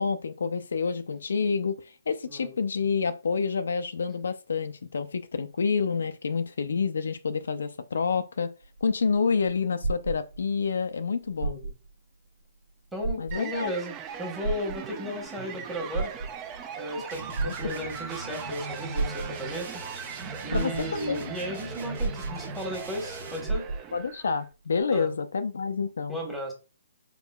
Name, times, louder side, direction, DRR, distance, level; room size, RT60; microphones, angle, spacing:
voice 1, 0.0-8.5 8.8-11.6 13.2-13.7 17.4-17.8 20.5-21.3 23.9-26.2, left 5 dB, 75° left, 0.4 m, -28 dB
sound 1, 8.6-10.7 11.3-12.0 12.4-12.5 13.0-13.7 14.4-15.3 15.8-16.6 17.4-18.1 18.9-19.6 20.2-20.3 20.5-21.2 22.0-22.8 23.1-23.2 23.5-24.1 24.8-24.9, right 3 dB, 90° right, 1.8 m, -32 dB
voice 2, 11.4-11.7 12.9-16.1 16.7-19.8 20.4-23.7 24.9-25.1 26.1-26.5, equal, 5° right, 1.3 m, -35 dB
sound 2, 13.3-24.5, right 7 dB, 25° right, 0.4 m, -40 dB
sound 3, 17.1-23.6, right 1 dB, 65° right, 1.2 m, -41 dB
3.8 x 3.6 x 2.3 m
hypercardioid pair, 145°, 0 cm